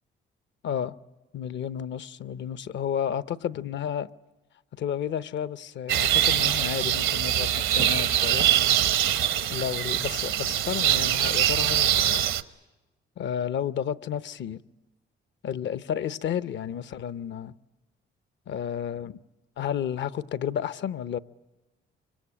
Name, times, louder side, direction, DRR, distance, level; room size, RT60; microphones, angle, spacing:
voice 1, 0.6-0.9 1.3-4.1 4.7-8.5 9.5-12.2 13.2-14.6 15.4-17.5 18.5-19.2 19.6-21.2, left 9 dB, 65° left, 0.8 m, -31 dB
sound 1, 5.9-12.4, right 11 dB, 85° right, 1.1 m, -23 dB
25.0 x 24.5 x 8.7 m
cardioid pair, 90°, 20 cm